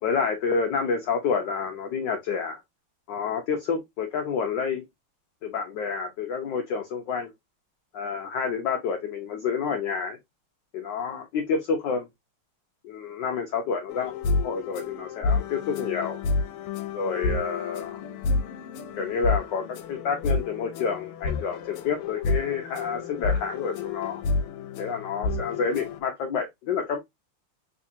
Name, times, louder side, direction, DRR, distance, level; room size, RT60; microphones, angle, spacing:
voice 1, 0.0-2.6 3.1-4.8 5.4-7.3 7.9-10.2 10.7-12.1 12.8-14.1 14.4-16.2 16.9-18.0 19.0-24.2 24.8-27.0, left 5 dB, 70° left, 1.2 m, -29 dB
sound 1, 13.9-26.0, left 3 dB, 90° left, 1.5 m, -30 dB
3.5 x 3.2 x 2.7 m
omnidirectional pair, 2.4 m